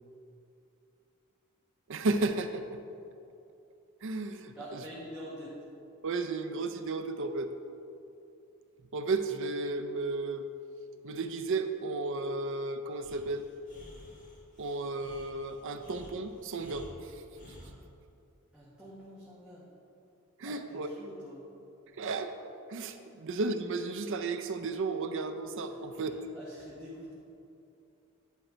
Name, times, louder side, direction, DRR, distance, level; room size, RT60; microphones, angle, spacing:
voice 1, 1.9-2.8 4.0-4.8 6.0-7.5 8.9-10.5 11.0-13.5 14.6-17.1 20.4-20.9 21.9-22.3 22.7-26.2, right 3 dB, 60° right, 8 dB, 0.5 m, -33 dB
voice 2, 4.5-5.6 18.5-19.7 20.4-21.4 23.1-23.2 25.7-25.8 26.1-27.1, equal, 5° right, -10 dB, 1.3 m, -46 dB
Breathing, 13.0-17.8, equal, 35° left, 1.4 m, -52 dB
10.5 x 4.4 x 5.1 m, 2.7 s
head